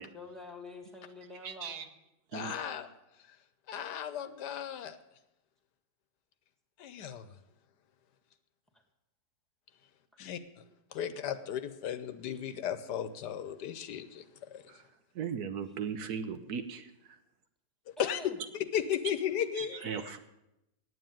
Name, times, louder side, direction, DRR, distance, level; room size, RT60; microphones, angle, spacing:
voice 1, 0.1-1.8 8.7-8.8 10.9-11.0 18.0-18.4, left 2 dB, ahead, 4 dB, 1.5 m, -47 dB
voice 2, 1.4-1.9 2.3-2.6 15.2-16.9 19.6-20.2, right 7 dB, 70° right, 9 dB, 1.2 m, -37 dB
voice 3, 2.3-2.9 3.7-5.0 6.8-7.2 10.2-10.4 10.9-14.2 14.5-14.6 18.0-18.2 18.7-20.1, left 9 dB, 75° left, 12 dB, 1.3 m, -35 dB
9.3 x 8.7 x 8.9 m, 0.89 s
omnidirectional pair, 1.9 m